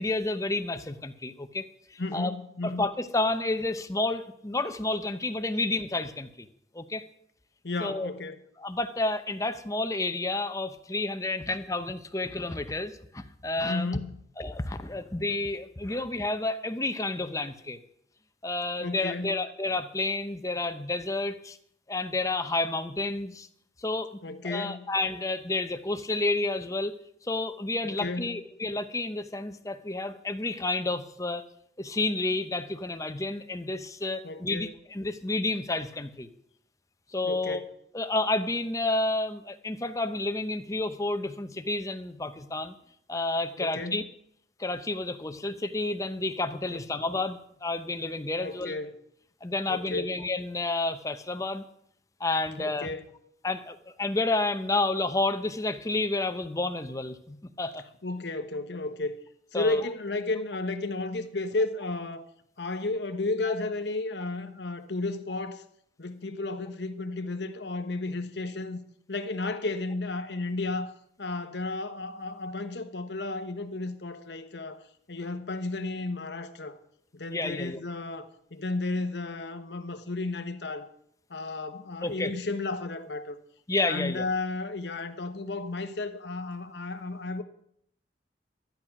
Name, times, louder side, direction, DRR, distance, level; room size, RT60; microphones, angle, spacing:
voice 1, 0.0-2.3 2.6-6.5 6.7-7.0 7.8-8.1 8.6-13.9 14.4-17.8 18.4-21.6 21.9-23.5 23.8-24.1 24.4-26.9 27.2-31.4 31.8-36.3 37.1-37.6 37.9-42.7 43.1-44.0 44.6-48.7 49.4-51.6 52.2-52.9 53.4-57.8 59.5-59.8 77.3-77.8 82.0-82.3 83.7-84.2, left 2 dB, 20° left, 0.8 m, -30 dB
voice 2, 2.0-2.9 7.6-8.5 13.7-14.2 18.8-19.4 24.2-24.9 27.8-28.4 34.2-34.7 37.2-37.6 43.6-44.0 46.7-46.8 48.4-48.9 49.7-50.1 52.6-53.1 58.0-59.1 59.5-62.3 62.6-65.6 66.0-68.8 69.1-70.9 71.2-74.8 75.1-76.8 77.1-80.9 81.3-83.4 83.8-87.4, left 2 dB, 70° left, 1.1 m, -33 dB
12.5 x 10.5 x 5.9 m
head